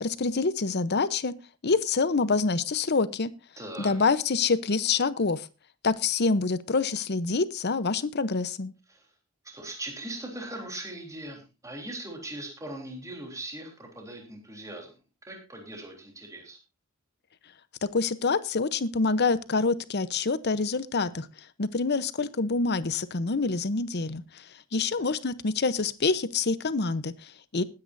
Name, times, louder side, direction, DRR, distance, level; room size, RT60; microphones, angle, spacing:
voice 1, 0.0-1.3 1.6-3.3 3.8-5.5 5.8-8.7 17.8-21.3 21.6-27.6, left 4 dB, 50° left, 15 dB, 0.8 m, -26 dB
voice 2, 3.6-3.9 8.9-9.1 9.5-15.0 15.3-16.6 25.0-25.1, right 1 dB, 15° right, 1 dB, 3.5 m, -40 dB
20.5 x 9.8 x 2.6 m, 0.29 s
head